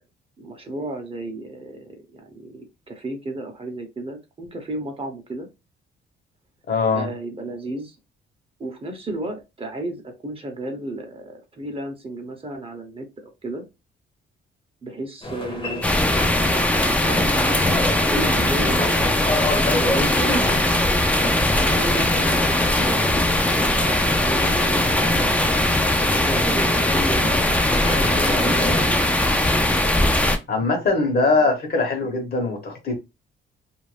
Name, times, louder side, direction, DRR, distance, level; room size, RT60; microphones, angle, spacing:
voice 1, 0.4-5.5 6.9-8.0 8.6-13.1 13.4-13.6 14.8-19.2 19.5-20.6 21.5-25.4 26.1-29.0 31.2-31.5, right 1 dB, 30° right, 0.8 m, -33 dB
voice 2, 6.7-7.1 30.5-33.0, left 3 dB, 50° left, 1.1 m, -21 dB
sound 1, 15.2-28.8, left 1 dB, 25° left, 0.9 m, -30 dB
sound 2, 15.8-30.4, left 1 dB, 5° left, 0.5 m, -20 dB
2.6 x 2.2 x 3.2 m
cardioid pair, 90°, 20 cm